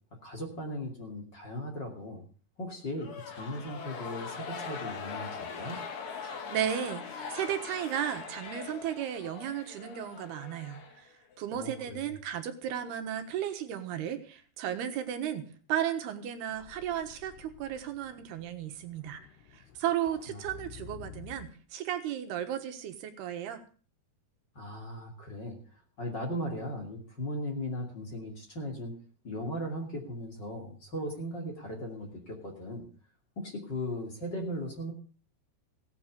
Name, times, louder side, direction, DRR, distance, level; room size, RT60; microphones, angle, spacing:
voice 1, 0.2-2.2 2.6-5.8 11.5-12.1 20.3-20.5 24.5-28.9 29.2-32.8 33.4-34.9, equal, 30° left, 2 dB, 2.7 m, -38 dB
sound 1, 2.9-11.4, left 5 dB, 50° left, 1.7 m, -41 dB
voice 2, 6.2-11.1 11.4-19.2 19.5-23.6, right 10 dB, 75° right, 7 dB, 3.3 m, -34 dB
sound 2, 16.5-21.5, left 9 dB, 90° left, 3.3 m, -51 dB
17.0 x 8.7 x 6.6 m, 0.41 s
omnidirectional pair, 4.7 m